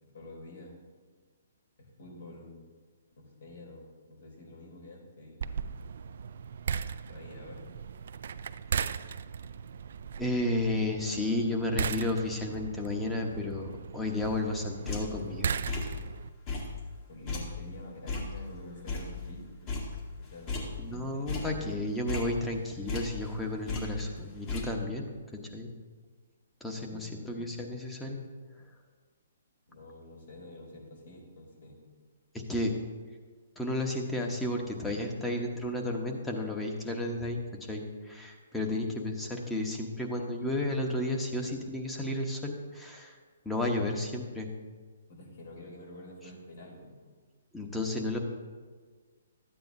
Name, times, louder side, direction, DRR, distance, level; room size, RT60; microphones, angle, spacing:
voice 1, 0.1-0.7 1.8-2.6 3.2-5.4 7.1-7.7 17.1-19.7 20.2-20.6 20.9-21.7 26.7-27.2 29.7-31.8 45.1-47.0, left 1 dB, 65° left, -1 dB, 3.2 m, -48 dB
sound 1, 5.4-16.3, right 7 dB, 65° right, 0.3 m, -37 dB
voice 2, 10.2-15.6 20.8-25.7 26.6-28.2 32.3-32.7 33.6-37.4 37.7-43.1 43.4-44.5 47.5-48.2, left 1 dB, 5° left, 1 dB, 1.0 m, -32 dB
sound 2, 14.2-15.3 15.7-16.1 16.5-19.4 19.7-21.0 21.3-23.4 23.7-24.6, left 3 dB, 30° left, 1.7 m, -36 dB
12.5 x 9.0 x 2.7 m, 1.5 s
hypercardioid pair, 140°, 0 cm